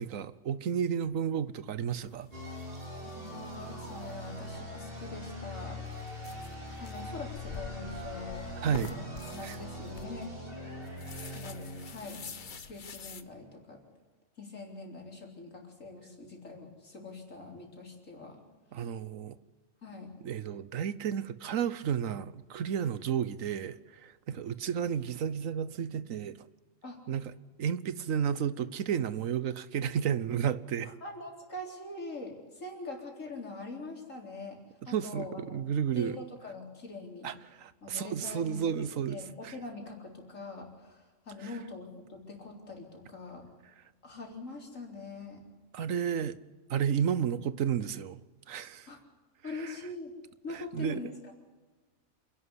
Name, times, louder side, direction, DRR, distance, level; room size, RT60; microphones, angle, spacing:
voice 1, 0.0-2.3 8.6-8.9 9.4-9.6 11.1-11.4 18.7-19.4 20.2-26.4 27.1-27.3 27.6-30.9 34.8-36.2 37.2-39.5 45.7-46.4 46.7-48.2 48.5-48.9 49.4-49.7 50.5-51.0, right 8 dB, 85° right, 1.3 m, -32 dB
sound 1, 1.9-13.2, left 5 dB, 40° left, 0.9 m, -48 dB
sound 2, 2.3-12.9, left 1 dB, 45° right, 4.4 m, -42 dB
voice 2, 3.0-5.8 6.8-10.4 11.3-12.2 12.6-13.8 14.4-18.4 19.8-20.1 26.8-27.0 30.8-34.6 34.9-35.4 36.0-37.3 37.8-43.5 44.0-45.4 48.9-49.0 49.4-50.1 50.4-51.3, left 3 dB, 75° left, 4.3 m, -43 dB
27.5 x 11.5 x 9.8 m
omnidirectional pair, 1.4 m